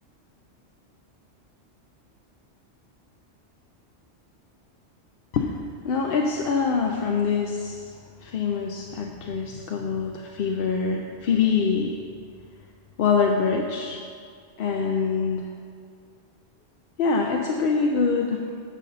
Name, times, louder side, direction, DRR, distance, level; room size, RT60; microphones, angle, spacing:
voice 1, 5.8-7.9 8.2-12.0 13.0-14.0 14.6-15.5 17.0-18.4, left 5 dB, 60° left, 1 dB, 0.7 m, -24 dB
9.8 x 4.1 x 6.6 m, 2.2 s
omnidirectional pair, 1.2 m